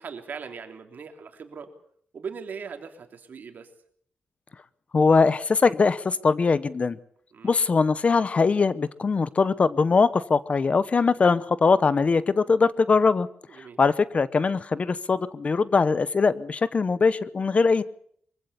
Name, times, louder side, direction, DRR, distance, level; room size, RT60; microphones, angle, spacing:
voice 1, 0.0-1.7 2.1-3.7 7.3-7.5 13.5-13.8, right 6 dB, 60° right, 5 dB, 3.4 m, -39 dB
voice 2, 4.9-7.0 7.4-13.3 13.8-17.8, left 4 dB, 40° left, 16 dB, 0.8 m, -21 dB
24.0 x 16.0 x 8.4 m, 0.64 s
wide cardioid pair, 115°, 3 cm